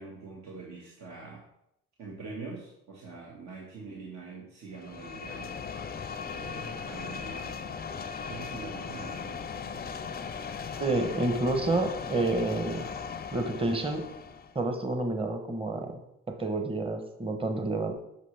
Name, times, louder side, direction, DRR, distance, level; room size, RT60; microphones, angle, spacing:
voice 1, 0.0-1.4 2.0-5.7 6.3-7.8 8.2-9.9, right 4 dB, 65° right, -3 dB, 1.8 m, -44 dB
sound 1, 4.7-14.6, left 6 dB, 30° left, 0.5 m, -38 dB
voice 2, 10.8-12.8 13.3-14.0 14.5-16.0 16.4-17.9, right 2 dB, 20° right, 5 dB, 1.0 m, -29 dB
9.2 x 6.1 x 3.4 m, 0.81 s
cardioid pair, 90°, 30 cm